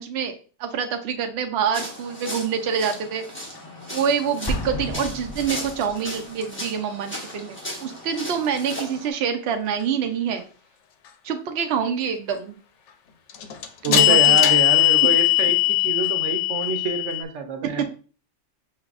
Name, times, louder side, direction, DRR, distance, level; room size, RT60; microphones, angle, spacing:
voice 1, 0.0-3.2 3.9-10.4 11.2-12.6 13.9-14.4 17.8-17.9, right 7 dB, 65° right, 6 dB, 0.8 m, -26 dB
sound 1, 1.7-9.1, left 1 dB, 10° left, 1.2 m, -36 dB
sound 2, 2.9-3.0 13.3-17.2, left 16 dB, 80° left, 0.9 m, -19 dB
Explosion, 4.4-6.1, left 1 dB, 40° left, 0.3 m, -31 dB
voice 2, 13.8-17.8, right 4 dB, 85° right, 5 dB, 1.1 m, -27 dB
5.8 x 3.3 x 2.4 m, 0.39 s
omnidirectional pair, 1.2 m